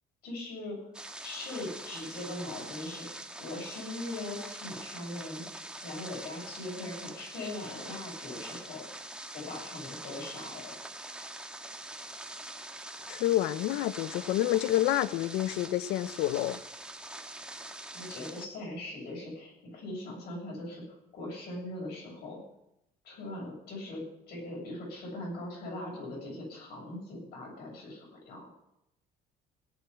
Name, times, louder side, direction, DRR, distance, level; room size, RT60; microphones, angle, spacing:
voice 1, 0.2-0.9 1.2-5.4 5.8-8.8 9.3-10.7 17.9-22.4 23.0-28.5, left 2 dB, 70° left, 7.8 m, -40 dB
sound 1, 0.9-18.5, right 1 dB, 5° right, 1.5 m, -44 dB
voice 2, 13.1-16.6, left 14 dB, 85° left, 0.6 m, -28 dB
17.5 x 6.2 x 9.6 m
cardioid pair, 110°, 17 cm